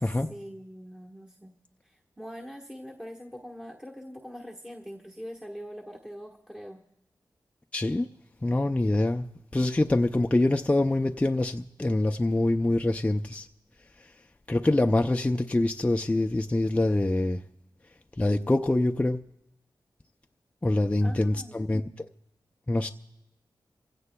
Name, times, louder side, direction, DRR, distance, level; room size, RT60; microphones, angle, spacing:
voice 1, 0.0-1.6 1.8-6.8 21.0-21.8, equal, 10° right, 1.3 m, -43 dB
voice 2, 7.7-8.1 8.4-9.3 9.5-13.5 14.5-17.4 18.2-19.2 20.6-21.8 22.7-22.9, left 2 dB, 15° left, 0.5 m, -25 dB
27.5 x 16.5 x 2.3 m
wide cardioid pair, 85°, 8 cm